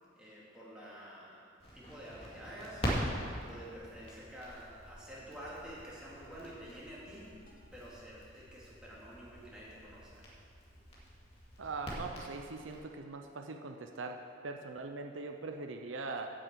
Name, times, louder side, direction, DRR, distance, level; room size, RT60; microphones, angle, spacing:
voice 1, 0.1-1.4 1.7-10.3, equal, 5° right, -8 dB, 2.4 m, -49 dB
Crackle, 1.6-12.8, equal, 30° left, 2.1 m, -43 dB
sound 1, 5.4-5.9 7.5-7.8, equal, 50° left, 2.0 m, -62 dB
voice 2, 11.6-16.3, right 3 dB, 75° right, 4 dB, 0.6 m, -41 dB
8.6 x 6.4 x 8.3 m, 2.4 s
head